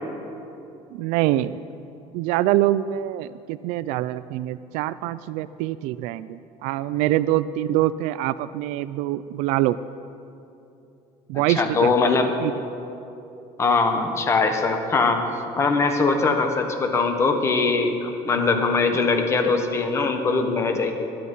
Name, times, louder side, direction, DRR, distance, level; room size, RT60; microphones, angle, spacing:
voice 1, 0.9-1.6 2.1-9.8 11.3-11.9 12.4-12.5 18.4-18.6, right 14 dB, 75° right, 14 dB, 0.4 m, -24 dB
voice 2, 11.5-12.3 13.6-15.2 15.6-21.1, left 4 dB, 20° left, 6 dB, 1.2 m, -21 dB
21.0 x 10.5 x 5.5 m, 2.8 s
cardioid pair, 175°, 12 cm